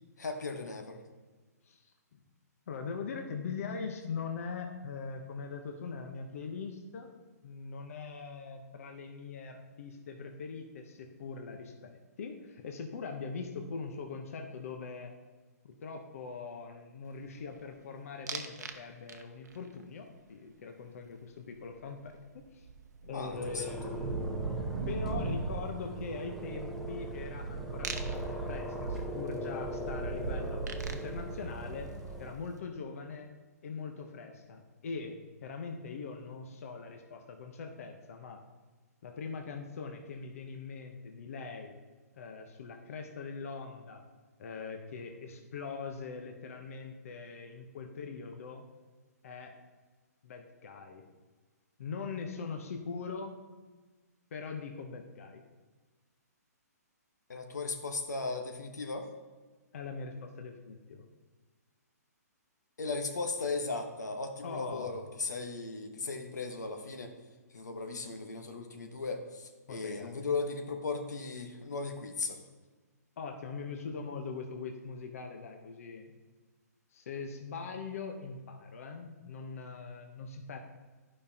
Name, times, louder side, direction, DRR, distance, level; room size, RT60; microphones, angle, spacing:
voice 1, 0.2-1.0 23.1-23.9 57.3-59.1 62.8-67.1 67.5-72.4, left 3 dB, 90° left, 4 dB, 1.1 m, -37 dB
voice 2, 1.7-2.2 2.7-15.1 15.6-22.7 23.0-24.3 24.9-30.6 30.9-31.9 32.2-33.3 33.6-38.4 39.0-41.8 42.2-44.0 44.4-48.6 49.2-49.5 50.2-51.0 51.8-53.4 54.3-55.4 59.7-61.0 64.4-65.1 69.7-70.1 73.2-76.1 76.9-80.6, left 5 dB, 55° left, 4 dB, 0.9 m, -42 dB
sound 1, 18.3-18.8 19.1-19.6 22.0-22.1 22.3-32.4, right 4 dB, 85° right, 0.8 m, -39 dB
sound 2, 23.3-32.3, right 1 dB, ahead, 0.5 m, -41 dB
11.5 x 5.3 x 2.8 m, 1.3 s
hypercardioid pair, 150°, 9 cm